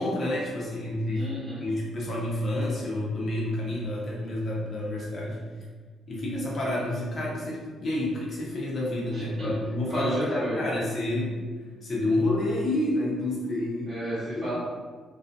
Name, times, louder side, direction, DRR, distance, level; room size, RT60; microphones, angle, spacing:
voice 1, 0.0-1.3 1.6-5.4 6.1-11.4 11.8-13.9 14.4-14.6, left 1 dB, 45° left, -4 dB, 0.8 m, -29 dB
voice 2, 1.1-1.6 9.1-9.5 9.9-10.6 13.9-14.6, equal, 45° right, -11 dB, 0.9 m, -33 dB
2.3 x 2.3 x 2.6 m, 1.5 s
cardioid pair, 90°, 0 cm